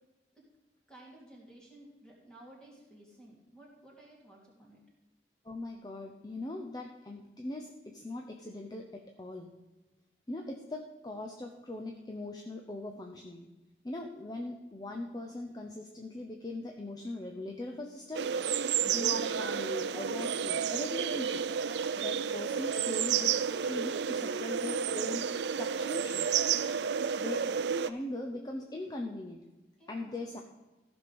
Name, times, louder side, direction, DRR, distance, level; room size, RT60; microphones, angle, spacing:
voice 1, 0.9-4.8 29.8-30.3, right 1 dB, 5° left, -3 dB, 2.6 m, -55 dB
voice 2, 5.4-9.5 10.3-13.5 13.8-18.3 18.8-21.4 21.9-25.2 25.6-26.3 27.2-27.4 27.8-29.4 29.9-30.4, left 2 dB, 20° left, 2 dB, 0.7 m, -40 dB
sound 1, 18.1-27.9, right 7 dB, 75° right, 0.4 m, -31 dB
14.5 x 6.1 x 5.2 m, 1.1 s
head